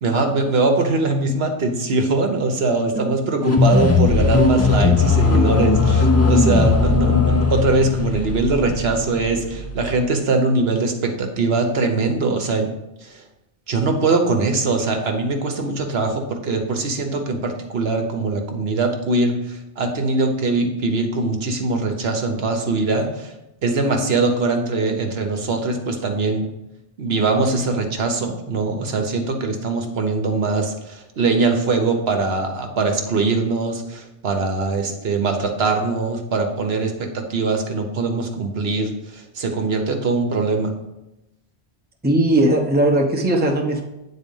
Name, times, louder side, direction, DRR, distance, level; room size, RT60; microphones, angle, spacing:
voice 1, 0.0-12.7 13.0-13.2 13.7-23.3 23.6-26.5 27.0-40.7, right 3 dB, 65° right, 4 dB, 1.1 m, -22 dB
sound 1, 3.4-10.1, left 4 dB, 20° left, 0.4 m, -18 dB
voice 2, 42.0-43.9, right 1 dB, 10° right, 1 dB, 0.7 m, -18 dB
8.6 x 4.0 x 5.4 m, 0.93 s
omnidirectional pair, 1.1 m